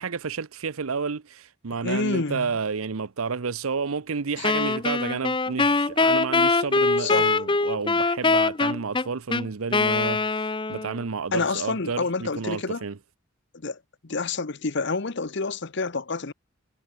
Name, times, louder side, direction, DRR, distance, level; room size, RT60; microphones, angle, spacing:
voice 1, 0.0-13.0, right 5 dB, 90° right, 0.8 m, -31 dB
voice 2, 1.8-2.5 4.4-4.5 7.0-7.4 11.3-12.8 13.6-16.3, left 3 dB, 55° left, 1.0 m, -28 dB
Wind instrument woodwind instrument, 4.4-11.0, left 3 dB, 25° left, 0.8 m, -23 dB
head